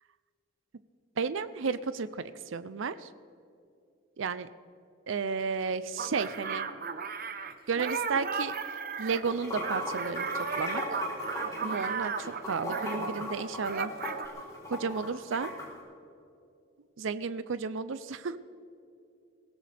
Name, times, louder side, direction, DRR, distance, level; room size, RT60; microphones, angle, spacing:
voice 1, 1.2-2.2 2.5-3.1 4.2-4.5 5.1-6.7 7.7-8.5 9.0-10.3 10.6-11.0 11.6-13.9 14.7-15.5 17.0-18.4, right 5 dB, 70° right, 13 dB, 0.5 m, -32 dB
sound 1, 6.0-13.3 13.6-14.3, right 5 dB, 45° right, 0.8 m, -35 dB
Water / Sink (filling or washing), 9.2-15.6, left 1 dB, 15° left, 4.0 m, -37 dB
22.5 x 16.5 x 3.4 m, 2.6 s
head